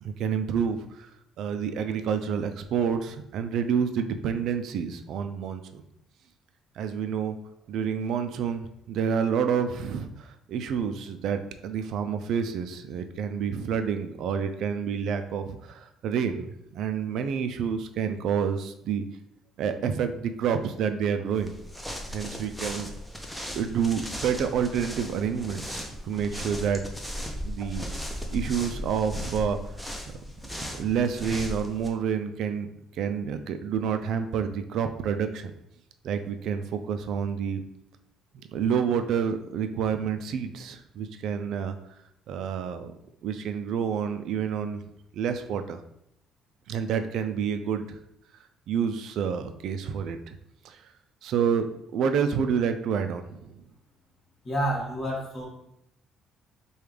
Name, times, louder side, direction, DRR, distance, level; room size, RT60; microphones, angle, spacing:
voice 1, 0.0-1.1 1.4-5.8 6.8-7.4 7.7-19.0 19.6-21.6 22.1-22.9 23.5-26.8 27.4-29.6 30.8-32.7 32.9-35.5 36.0-37.6 38.3-41.7 42.3-42.9 43.2-44.8 45.1-45.8 46.7-48.0 48.7-50.3 50.6-50.9 51.2-51.6 51.9-53.6, right 7 dB, 65° right, 8 dB, 0.3 m, -28 dB
walking in snow, 21.3-31.9, equal, ahead, 0.5 m, -37 dB
voice 2, 54.4-55.5, right 1 dB, 30° left, -4 dB, 1.5 m, -29 dB
5.0 x 2.3 x 3.2 m, 0.78 s
cardioid pair, 130°, 0 cm